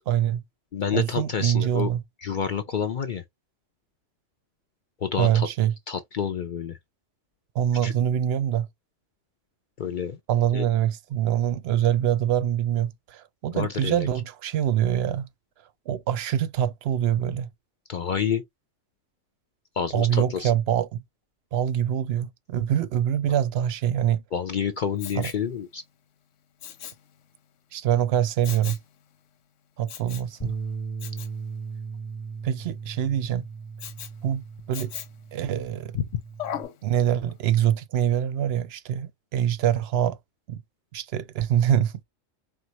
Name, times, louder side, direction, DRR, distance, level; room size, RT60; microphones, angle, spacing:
voice 1, 0.1-0.4 0.9-2.0 5.2-5.7 7.5-8.7 10.3-15.3 15.9-17.5 19.9-21.0 21.5-24.2 25.2-25.3 27.7-28.8 29.8-30.6 32.4-33.4 34.2-34.9 35.3-36.0 36.8-40.2 40.5-40.6 40.9-42.0, right 10 dB, 65° right, 0.7 m, -24 dB
voice 2, 0.7-1.9 2.2-3.2 5.0-5.5 5.9-6.8 7.8-7.9 9.8-10.2 10.5-10.6 13.5-14.1 17.9-18.4 19.7-20.5 24.3-25.8 35.9-36.2, left 7 dB, 55° left, 0.5 m, -28 dB
Respiratory sounds, 25.0-25.5 26.6-27.1 28.4-28.9 29.9-30.3 31.0-31.4 33.8-34.2 34.7-35.3 36.4-36.8 37.3-37.4, left 10 dB, 85° left, 1.0 m, -37 dB
Bass guitar, 30.4-36.7, right 5 dB, 25° left, 1.3 m, -37 dB
4.5 x 2.0 x 4.0 m
omnidirectional pair, 1.3 m